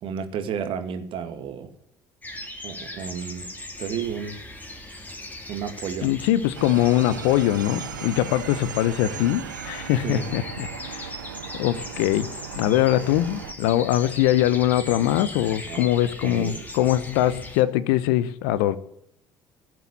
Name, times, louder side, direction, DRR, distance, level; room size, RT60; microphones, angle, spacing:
voice 1, 0.0-1.7 2.6-3.5 3.8-4.4 5.5-6.1 10.0-10.2 15.6-15.8 16.2-16.6, right 7 dB, 60° right, 2.3 m, -31 dB
sound 1, 2.2-17.6, left 1 dB, 15° left, 3.2 m, -39 dB
voice 2, 6.0-11.2 11.6-12.3 12.6-18.8, left 13 dB, 75° left, 0.9 m, -22 dB
sound 2, 6.5-13.5, right 9 dB, 85° right, 0.8 m, -37 dB
16.5 x 7.8 x 8.4 m
hypercardioid pair, 55°, 10 cm